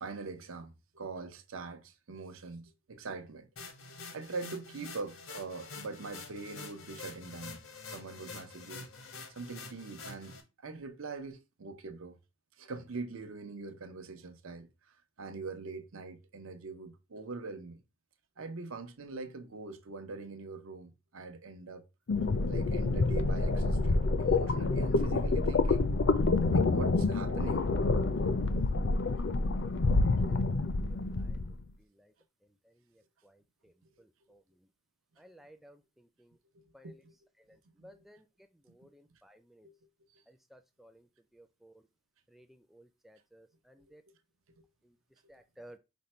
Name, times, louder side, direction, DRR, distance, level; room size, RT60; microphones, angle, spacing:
voice 1, 0.0-3.5 4.1-7.6 7.9-12.2 12.6-14.7 15.2-17.8 18.4-21.8 22.5-25.9 26.5-27.7 36.5-37.1 37.8-38.0 38.8-38.9 39.6-39.7 40.1-40.2 44.5-44.6, right 3 dB, 85° right, 0.7 m, -43 dB
sound 1, 3.6-10.4, left 4 dB, 85° left, 0.9 m, -47 dB
sound 2, 22.1-31.5, left 3 dB, 60° left, 0.5 m, -28 dB
voice 2, 29.9-31.4 32.0-32.1 34.3-34.4 35.2-35.8 36.2-36.3 36.7-36.9 37.8-38.2 38.7-39.7 40.3-41.0 41.3-41.7 42.3-44.0 45.3-45.8, right 1 dB, ahead, 0.4 m, -57 dB
5.2 x 2.2 x 4.3 m
head